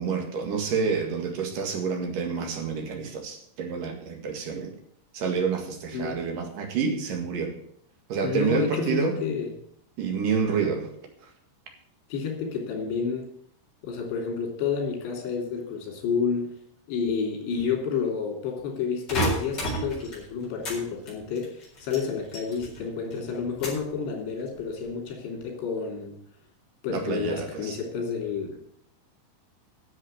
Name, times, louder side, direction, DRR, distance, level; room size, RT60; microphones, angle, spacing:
voice 1, 0.0-4.7 5.1-7.5 8.1-9.2 10.0-10.9 26.9-27.8, right 5 dB, 60° right, 3 dB, 3.2 m, -28 dB
voice 2, 8.2-9.5 10.6-10.8 12.1-13.3 13.8-16.6 16.9-26.2 26.8-28.6, left 6 dB, 85° left, 2 dB, 5.3 m, -30 dB
sound 1, 19.1-20.8 21.1-22.8 23.1-23.9 24.4-24.9, right 1 dB, 25° left, 4.5 m, -31 dB
11.0 x 7.3 x 9.0 m, 0.66 s
omnidirectional pair, 4.8 m